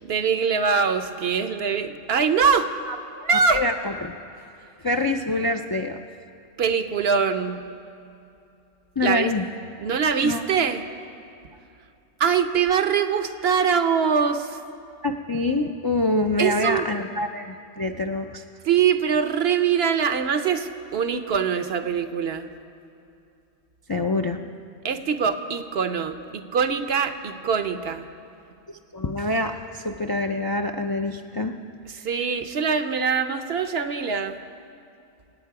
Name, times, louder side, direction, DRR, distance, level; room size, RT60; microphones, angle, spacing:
voice 1, 0.0-2.7 3.2-3.6 6.6-7.6 9.0-9.3 9.8-10.9 12.2-14.6 16.4-16.9 18.6-22.5 24.8-28.1 31.9-34.4, right 6 dB, 70° right, 8 dB, 1.0 m, -23 dB
voice 2, 3.5-4.1 4.8-6.0 9.0-9.4 10.2-10.4 15.0-18.4 23.9-24.5 28.7-31.6, left 2 dB, 40° left, 3 dB, 0.3 m, -25 dB
25.5 x 8.9 x 4.8 m, 2.6 s
omnidirectional pair, 1.1 m